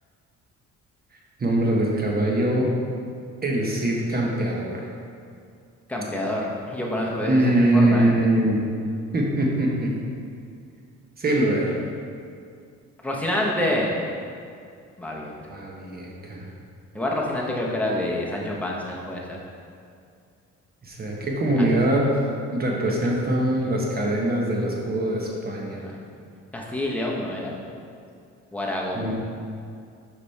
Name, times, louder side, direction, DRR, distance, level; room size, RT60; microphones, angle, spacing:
voice 1, 1.4-2.7 3.4-4.9 7.2-8.6 9.1-9.9 11.2-11.8 15.5-16.5 18.0-18.1 20.8-25.9 28.9-29.1, right 1 dB, 30° right, -1 dB, 1.2 m, -23 dB
voice 2, 5.9-8.1 13.0-13.9 15.0-15.3 16.9-19.4 21.9-22.1 26.0-26.1 26.5-27.5 28.5-29.1, left 1 dB, 5° left, -3 dB, 1.1 m, -27 dB
5.3 x 5.0 x 4.2 m, 2.4 s
cardioid pair, 90°, 30 cm